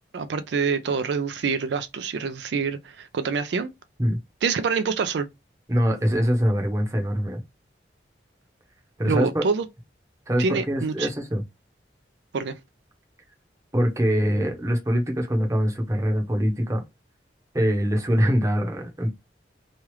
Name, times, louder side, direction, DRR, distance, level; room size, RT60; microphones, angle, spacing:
voice 1, 0.1-3.7 4.4-5.3 9.1-9.6 10.4-11.1 12.3-12.6, right 5 dB, 70° right, 0.4 m, -26 dB
voice 2, 5.7-7.4 9.0-9.5 10.3-11.4 13.7-16.8 17.5-19.1, equal, 15° right, 0.8 m, -23 dB
3.1 x 2.3 x 3.0 m
head